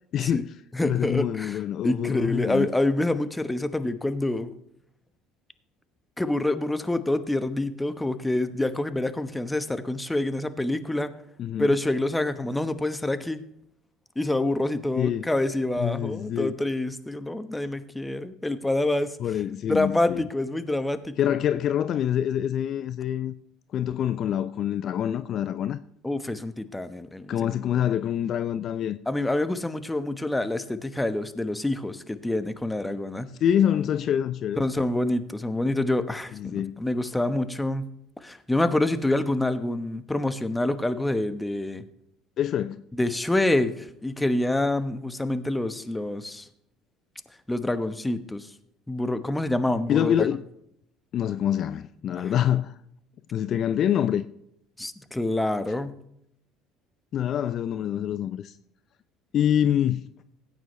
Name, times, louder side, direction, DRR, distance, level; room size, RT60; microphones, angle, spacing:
voice 1, 0.1-0.5 0.8-2.7 11.4-11.7 15.0-15.3 15.8-16.5 19.2-20.3 21.2-23.3 23.7-25.8 27.3-29.0 33.4-34.6 36.4-36.7 42.4-42.8 49.9-50.4 51.1-52.8 53.3-54.2 57.1-58.6 59.3-60.0, left 10 dB, 50° left, 0.4 m, -26 dB
voice 2, 0.7-4.5 6.2-11.1 11.6-13.4 14.2-19.2 19.7-21.3 26.0-27.6 29.1-33.3 34.6-37.8 38.2-41.8 43.0-46.5 47.5-48.5 48.9-50.3 52.1-52.3 54.8-56.0, left 1 dB, 10° left, 1.0 m, -27 dB
16.5 x 9.2 x 3.2 m
hypercardioid pair, 70°, 0 cm